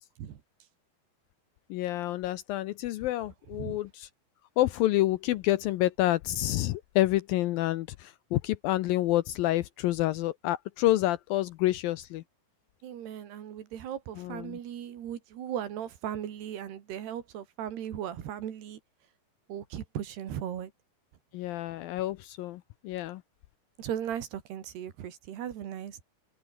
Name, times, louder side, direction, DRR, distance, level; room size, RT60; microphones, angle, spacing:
voice 1, 1.7-4.1 4.6-12.2 14.2-14.6 21.3-23.2, left 15 dB, 80° left, 2.2 m, -28 dB
voice 2, 12.8-18.8 19.5-20.7 23.8-26.0, right 10 dB, 75° right, 4.4 m, -37 dB
open air
omnidirectional pair, 4.7 m